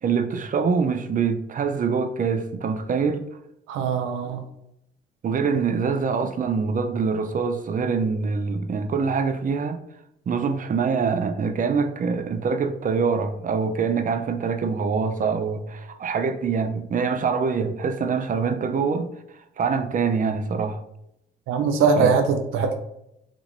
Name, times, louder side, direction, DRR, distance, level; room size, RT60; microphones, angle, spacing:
voice 1, 0.0-3.3 5.2-9.8 10.3-19.1 19.6-20.8 22.0-22.1, right 5 dB, 40° right, 0.5 m, -24 dB
voice 2, 3.7-4.4 21.5-22.7, right 5 dB, 90° right, 0.5 m, -21 dB
5.0 x 3.6 x 2.6 m
cardioid pair, 90°, 20 cm